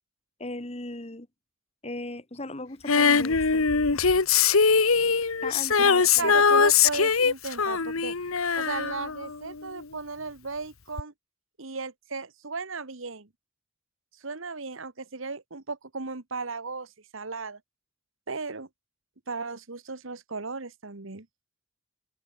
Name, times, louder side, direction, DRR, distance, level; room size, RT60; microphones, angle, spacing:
voice 1, 0.4-1.3 1.8-3.6 5.4-6.3, left 2 dB, 30° left, 1.7 m, -37 dB
Female singing, 2.9-9.8 11.0-11.1, left 5 dB, 80° left, 1.3 m, -22 dB
voice 2, 6.2-8.1 8.6-11.1 11.6-13.3 14.2-17.6 18.3-18.7 19.3-21.3, right 4 dB, 65° right, 1.5 m, -35 dB
head